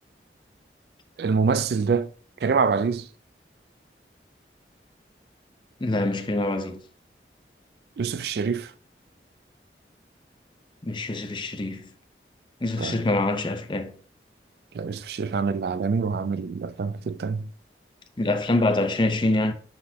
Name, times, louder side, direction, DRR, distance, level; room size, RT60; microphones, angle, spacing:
voice 1, 1.2-2.1 2.4-3.1 8.0-8.7 12.8-13.0 14.7-17.5, right 5 dB, 60° right, 0.3 m, -25 dB
voice 2, 5.8-6.8 10.8-11.9 12.6-13.9 18.2-19.5, left 2 dB, 25° left, 0.6 m, -25 dB
10.0 x 4.2 x 2.7 m
head